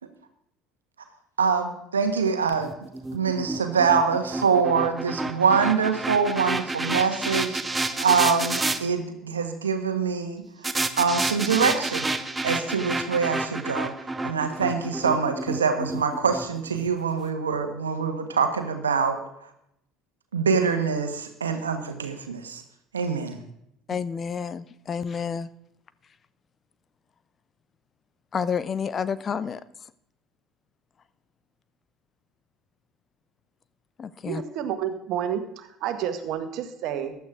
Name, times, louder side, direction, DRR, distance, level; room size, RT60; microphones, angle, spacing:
voice 1, 1.4-2.7 3.1-7.6 8.0-10.4 11.0-12.1 12.4-13.9 14.2-19.2 20.3-22.6 22.9-23.4, right 5 dB, 90° right, 7 dB, 1.3 m, -24 dB
sound 1, 2.6-8.8 10.6-16.9, right 2 dB, 15° right, 1.2 m, -30 dB
voice 2, 23.9-25.5 28.3-29.6 34.0-34.4, left 6 dB, 40° left, 16 dB, 0.7 m, -29 dB
voice 3, 34.2-37.2, right 9 dB, 60° right, 8 dB, 1.5 m, -30 dB
15.0 x 11.5 x 3.7 m, 0.77 s
hypercardioid pair, 65°, 0 cm